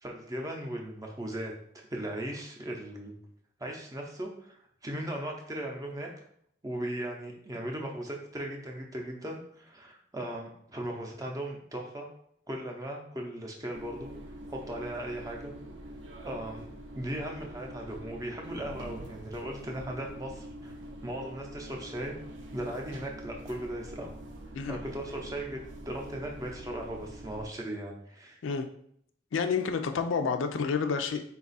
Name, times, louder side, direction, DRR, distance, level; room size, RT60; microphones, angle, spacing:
voice 1, 0.0-1.5 1.9-3.2 3.6-6.1 6.6-12.1 12.5-14.1 14.5-15.5 16.2-16.7 16.9-20.7 21.0-22.1 22.5-24.2 24.7-25.6 25.9-28.4, right 1 dB, 20° right, 1 dB, 0.5 m, -37 dB
sound 1, 13.7-27.5, right 1 dB, 75° right, 0.6 m, -45 dB
voice 2, 29.3-31.3, left 5 dB, 85° left, 7 dB, 0.4 m, -29 dB
4.0 x 2.3 x 3.9 m, 0.68 s
head